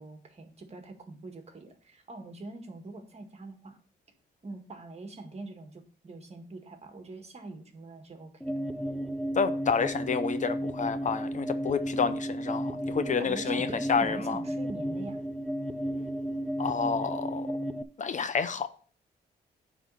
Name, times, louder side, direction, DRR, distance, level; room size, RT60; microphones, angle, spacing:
voice 1, 0.0-3.8 4.4-8.3 12.8-15.2, right 2 dB, 35° right, 1.8 m, -44 dB
sound 1, 8.4-17.8, equal, ahead, 0.5 m, -33 dB
voice 2, 9.3-14.4 16.6-17.6 18.0-18.7, left 6 dB, 45° left, 0.6 m, -29 dB
9.3 x 3.9 x 5.5 m
cardioid pair, 95°, 18 cm